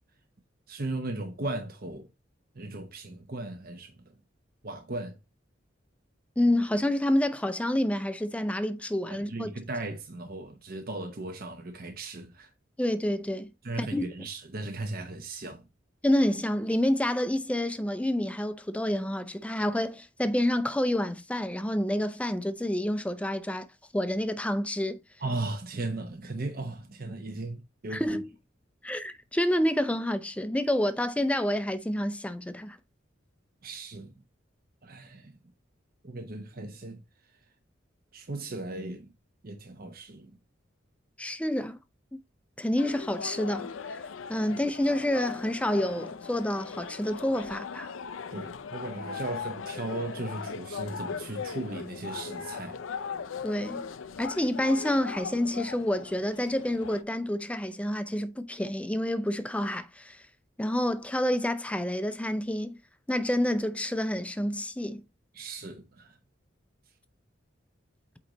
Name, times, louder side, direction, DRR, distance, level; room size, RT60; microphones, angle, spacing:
voice 1, 0.7-2.1 2.5-3.9 4.6-5.2 9.1-12.5 13.6-15.6 25.2-28.2 33.6-34.2 34.8-35.4 36.0-37.0 38.1-39.1 39.4-40.4 44.5-44.6 48.3-52.8 65.3-66.2, right 2 dB, 50° right, 0.9 m, -37 dB
voice 2, 6.4-9.5 12.8-13.5 13.8-14.0 16.0-23.7 23.9-25.0 27.9-28.3 28.8-32.8 41.2-41.8 42.1-42.2 42.6-44.0 44.3-47.9 53.4-53.9 54.2-60.2 60.6-62.8 63.1-65.0, left 1 dB, 5° left, 0.5 m, -28 dB
sound 1, 42.8-57.0, left 6 dB, 85° left, 0.5 m, -39 dB
8.5 x 3.1 x 3.9 m
head